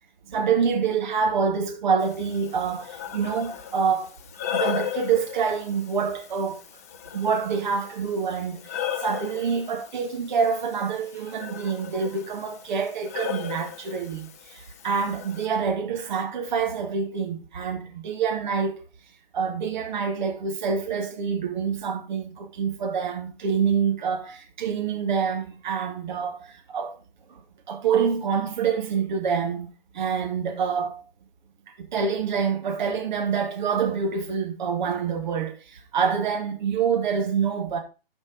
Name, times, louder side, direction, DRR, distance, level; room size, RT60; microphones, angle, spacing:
voice 1, 0.3-4.2 4.5-6.6 7.1-18.8 19.3-27.0 27.3-27.4 27.7-29.7 29.9-31.0 31.8-37.8, right 6 dB, 50° right, 2.2 m, -26 dB
Breathing, 2.0-15.5, left 10 dB, 15° left, 0.3 m, -36 dB
9.3 x 5.4 x 4.7 m
figure-of-eight pair, 125°, 30 cm